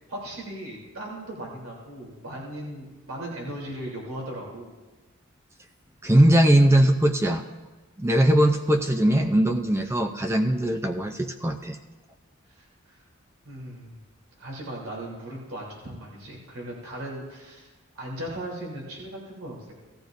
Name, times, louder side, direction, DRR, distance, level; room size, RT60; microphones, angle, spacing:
voice 1, 0.1-4.7 12.5-13.0 13.4-13.9 14.4-19.8, right 1 dB, 85° right, -2 dB, 3.3 m, -38 dB
voice 2, 6.0-7.4 8.0-11.8, right 1 dB, 10° right, 4 dB, 0.5 m, -20 dB
18.0 x 14.0 x 2.6 m, 1.2 s
head